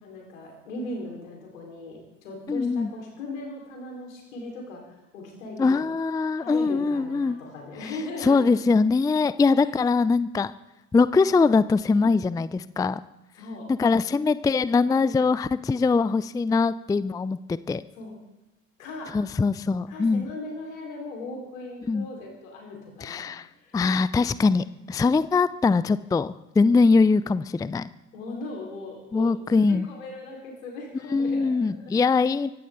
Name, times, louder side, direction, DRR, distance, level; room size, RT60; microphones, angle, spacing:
voice 1, 0.0-4.8 5.1-5.8 6.3-8.7 9.6-9.7 13.3-13.7 17.9-18.2 18.8-19.1 19.9-23.3 23.6-23.8 28.1-29.4 29.7-31.9, left 2 dB, 75° left, 0 dB, 4.6 m, -38 dB
voice 2, 2.5-2.9 5.6-7.4 8.2-10.5 10.9-13.0 13.8-17.8 19.1-20.3 21.9-22.1 23.0-23.5 23.7-27.9 29.1-29.9 31.1-32.5, left 4 dB, 10° left, 17 dB, 0.4 m, -22 dB
24.0 x 12.5 x 3.9 m, 1.0 s
figure-of-eight pair, 55°, 40 cm